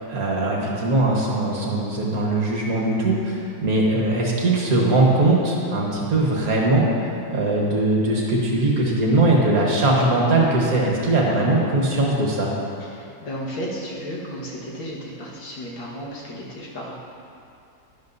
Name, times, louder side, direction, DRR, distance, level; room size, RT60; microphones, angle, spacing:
voice 1, 0.1-6.9 7.3-12.5, right 2 dB, 50° right, -3 dB, 1.7 m, -20 dB
voice 2, 12.8-16.9, equal, 85° left, -4 dB, 2.3 m, -33 dB
11.5 x 11.0 x 2.7 m, 2.6 s
omnidirectional pair, 2.0 m